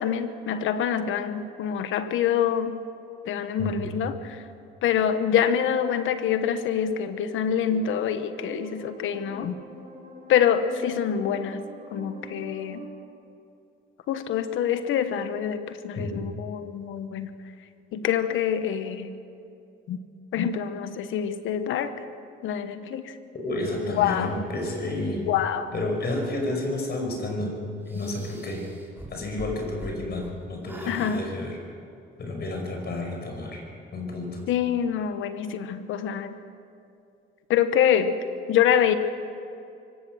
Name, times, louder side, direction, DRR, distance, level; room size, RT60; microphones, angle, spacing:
voice 1, 0.0-2.8 3.2-4.4 4.8-9.5 10.3-11.6 11.9-12.8 14.1-17.3 17.9-19.1 19.9-20.0 20.3-21.9 22.4-23.1 23.9-24.3 25.3-25.7 30.9-31.2 34.5-36.4 37.5-38.1 38.5-38.9, left 9 dB, 85° left, 10 dB, 1.2 m, -25 dB
voice 2, 3.6-3.9 16.0-16.2 23.3-25.3 25.7-27.6 27.9-28.7 29.1-31.6 32.2-33.6 33.9-34.4, left 2 dB, 55° left, 2 dB, 5.6 m, -30 dB
sound 1, 7.7-12.9, equal, 45° right, 5.1 m, -44 dB
sound 2, 27.9-30.3 30.6-31.2, right 1 dB, 10° right, 3.6 m, -42 dB
24.0 x 17.0 x 6.4 m, 2.6 s
cardioid pair, 90°, 20 cm